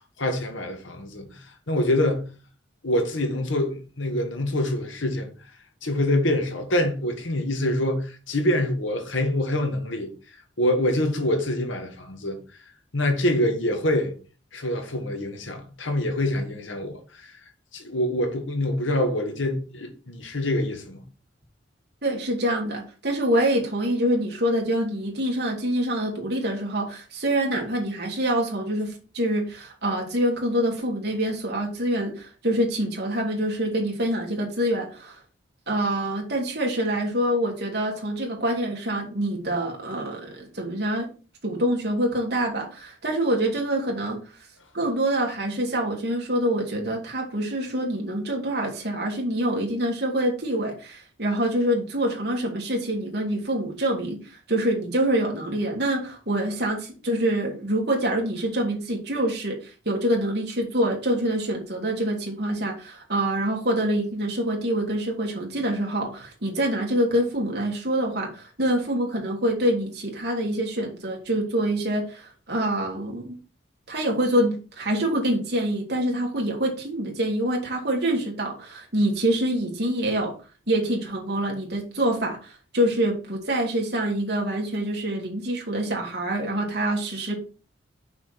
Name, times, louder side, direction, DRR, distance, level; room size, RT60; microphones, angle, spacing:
voice 1, 0.2-2.3 2.8-5.3 5.8-12.4 12.9-14.2 14.5-17.4 17.7-21.0, left 1 dB, 80° left, 1.8 m, -25 dB
voice 2, 22.0-35.2 35.7-41.1 41.4-44.2 44.7-73.4 73.9-80.3 80.7-87.4, right 1 dB, 55° right, 2.5 m, -26 dB
6.0 x 4.8 x 5.9 m
head